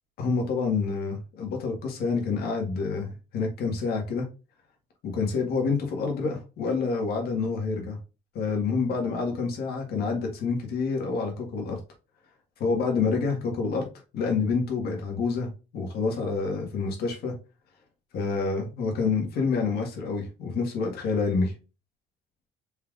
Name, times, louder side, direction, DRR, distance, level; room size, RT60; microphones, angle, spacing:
voice 1, 0.2-4.3 5.0-8.0 8.3-11.8 12.6-13.9 14.1-15.5 15.7-17.3 18.1-21.5, left 4 dB, 70° left, 2 dB, 1.6 m, -27 dB
4.4 x 3.7 x 2.5 m, 0.31 s
cardioid pair, 110°, 17 cm